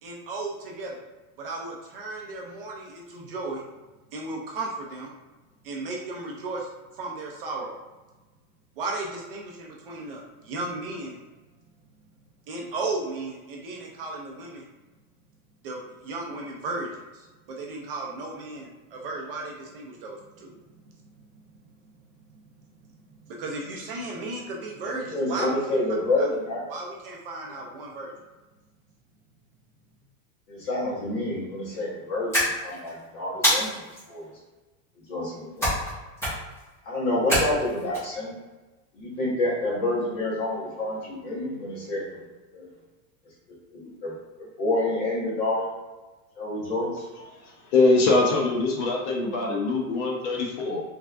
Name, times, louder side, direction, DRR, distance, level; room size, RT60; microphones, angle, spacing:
voice 1, 0.0-1.0 1.4-3.6 4.1-5.1 5.6-6.7 6.9-7.7 8.8-11.2 12.5-14.6 15.6-20.5 23.3-25.6 26.2-26.3 26.7-28.1, right 2 dB, 45° right, -1 dB, 0.4 m, -35 dB
voice 2, 24.9-26.6 30.5-33.8 34.1-34.3 35.1-35.7 36.8-38.3 38.9-42.2 42.5-42.7 43.7-45.7 46.4-47.0, left 1 dB, 40° left, -5 dB, 1.2 m, -28 dB
sound 1, 32.3-32.9 33.4-34.0 35.6-35.9 36.2-36.6 37.3-38.0, equal, 5° left, 1.1 m, -25 dB
voice 3, 47.4-50.8, left 3 dB, 55° left, 0 dB, 0.8 m, -23 dB
3.4 x 3.2 x 2.4 m, 1.2 s
supercardioid pair, 180°, 43 cm